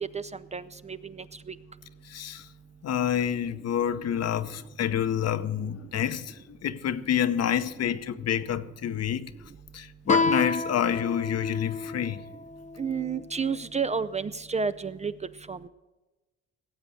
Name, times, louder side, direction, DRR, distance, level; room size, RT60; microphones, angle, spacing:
voice 1, 0.1-1.5 12.8-15.1 15.5-15.7, right 5 dB, 25° right, 0.5 m, -31 dB
voice 2, 2.0-2.5 2.8-9.3 9.7-12.2, left 9 dB, 55° left, 0.8 m, -28 dB
Guitar, 10.1-13.3, left 3 dB, 25° left, 0.8 m, -30 dB
17.5 x 7.6 x 6.5 m
cardioid pair, 90°, 30 cm